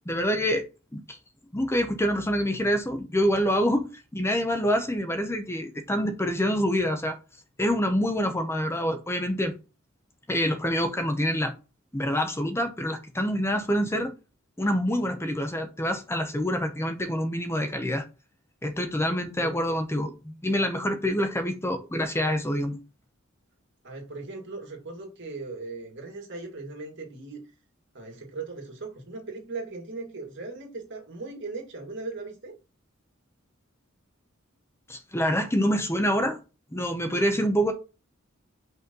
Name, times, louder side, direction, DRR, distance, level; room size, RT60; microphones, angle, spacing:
voice 1, 0.1-0.7 0.9-1.2 1.5-7.2 7.6-9.5 10.3-11.5 11.9-14.1 14.6-18.1 18.6-22.8 34.9-36.4 36.7-37.7, equal, 10° left, 0.8 m, -26 dB
voice 2, 23.8-27.4 27.9-32.5, right 3 dB, 60° right, 2.2 m, -38 dB
5.4 x 4.2 x 5.2 m
head